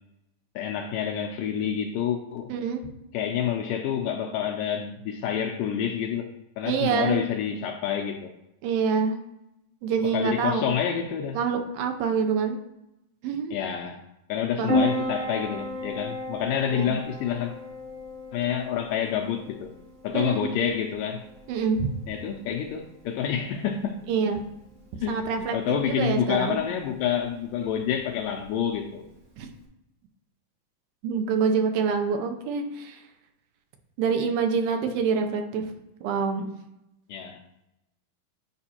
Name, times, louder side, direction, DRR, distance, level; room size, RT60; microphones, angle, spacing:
voice 1, 0.6-2.5 3.1-6.3 6.6-8.3 10.1-11.4 13.5-14.0 14.3-17.5 18.3-19.7 20.0-21.3 22.1-24.0 25.0-25.2 25.5-29.0 37.1-37.4, left 8 dB, 80° left, 2.0 m, -28 dB
voice 2, 2.5-2.8 6.6-7.2 8.6-9.2 9.8-10.6 11.3-12.6 13.2-13.6 14.6-14.7 16.7-17.0 20.1-20.5 21.5-21.9 24.1-24.4 25.1-25.6 25.8-26.6 29.4-29.5 31.0-33.0 34.0-35.7 36.0-36.5, right 6 dB, 80° right, 2.4 m, -26 dB
Piano, 14.7-29.6, left 1 dB, 55° right, 1.4 m, -35 dB
9.6 x 5.1 x 2.8 m
omnidirectional pair, 4.2 m